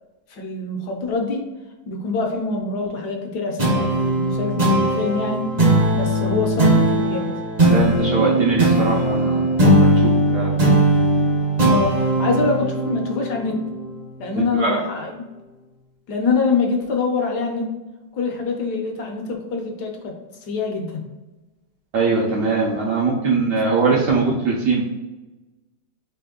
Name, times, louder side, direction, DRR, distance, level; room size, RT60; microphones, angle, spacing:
voice 1, 0.3-1.5 1.9-5.5 5.9-7.3 11.7-13.6 14.2-15.3 16.1-17.7 18.1-20.2 20.5-21.0, left 4 dB, 70° left, 2 dB, 1.2 m, -25 dB
sound 1, 3.6-14.4, right 1 dB, 35° right, 0.7 m, -19 dB
voice 2, 7.7-10.6 14.5-14.8 21.9-24.8, right 4 dB, 70° right, -4 dB, 1.2 m, -21 dB
3.4 x 3.1 x 3.6 m, 1.1 s
omnidirectional pair, 2.0 m